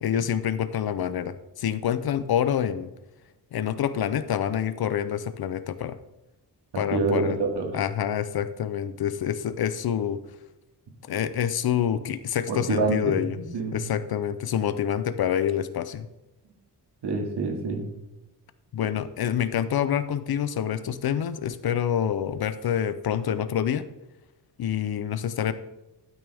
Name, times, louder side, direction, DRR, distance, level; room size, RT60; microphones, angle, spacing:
voice 1, 0.0-2.9 3.5-6.0 6.8-7.4 7.7-10.2 11.0-13.4 13.7-16.1 18.7-23.9 24.6-25.5, left 9 dB, 65° left, 13 dB, 0.6 m, -27 dB
voice 2, 6.9-7.7 12.5-13.8 17.0-17.9, right 3 dB, 85° right, 2 dB, 2.3 m, -27 dB
12.5 x 9.3 x 3.5 m, 0.97 s
wide cardioid pair, 175°, 40 cm